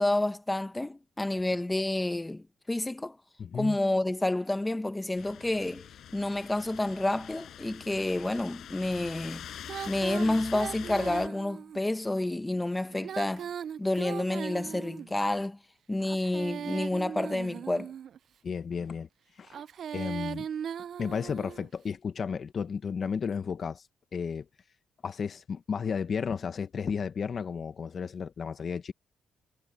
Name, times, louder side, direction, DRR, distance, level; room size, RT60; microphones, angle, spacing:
voice 1, 0.0-3.2 3.5-5.9 6.1-9.5 9.9-13.5 13.8-15.6 15.9-17.9, left 2 dB, 15° left, 1.2 m, -29 dB
voice 2, 3.4-3.8 18.4-19.1 19.4-19.6 19.9-20.5 21.0-23.8 24.1-24.5 25.0-28.9, left 6 dB, 45° left, 1.1 m, -33 dB
sound 1, 5.1-11.3, left 10 dB, 70° left, 6.5 m, -44 dB
Female singing, 9.7-11.8 12.9-15.2 16.0-18.2 19.4-21.7, right 8 dB, 60° right, 0.4 m, -38 dB
cardioid pair, 90°, 0 cm